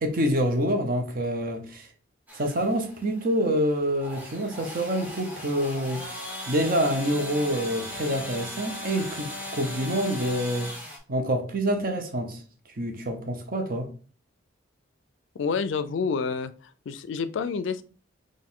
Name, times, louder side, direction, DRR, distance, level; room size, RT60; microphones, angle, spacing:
voice 1, 0.0-1.9 2.3-6.1 6.5-10.7 11.1-12.4 12.8-13.9, equal, 45° right, 0.8 m, -27 dB
sound 1, 2.3-11.0, left 1 dB, 10° right, 0.9 m, -38 dB
voice 2, 15.4-16.5 16.9-17.8, left 5 dB, 70° left, 0.4 m, -28 dB
4.3 x 2.5 x 3.6 m
head